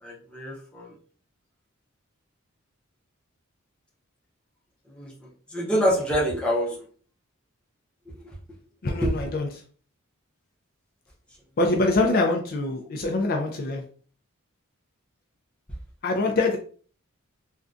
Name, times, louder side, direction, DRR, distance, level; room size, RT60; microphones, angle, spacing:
voice 1, 0.0-1.0 4.9-5.1 5.5-6.8 8.1-8.2 9.0-9.2, equal, 5° left, -4 dB, 0.7 m, -26 dB
voice 2, 8.8-9.5 11.6-13.8 16.0-16.6, left 2 dB, 45° left, 2 dB, 0.4 m, -24 dB
3.6 x 2.2 x 2.5 m, 0.43 s
head